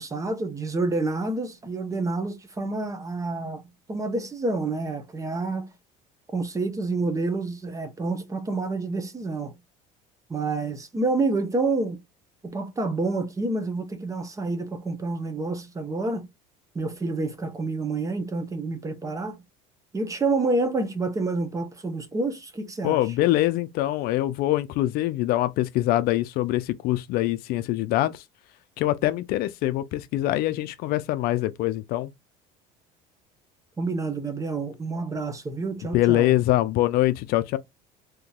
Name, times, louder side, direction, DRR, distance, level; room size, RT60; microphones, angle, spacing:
voice 1, 0.0-3.6 3.9-5.7 6.3-9.5 10.3-12.0 12.4-16.3 16.7-19.4 19.9-23.0 33.8-36.3, right 3 dB, 20° right, 0.7 m, -28 dB
voice 2, 22.8-28.2 28.8-32.1 35.9-37.6, left 15 dB, 60° left, 0.5 m, -24 dB
3.8 x 2.8 x 2.3 m
supercardioid pair, 115°, 17 cm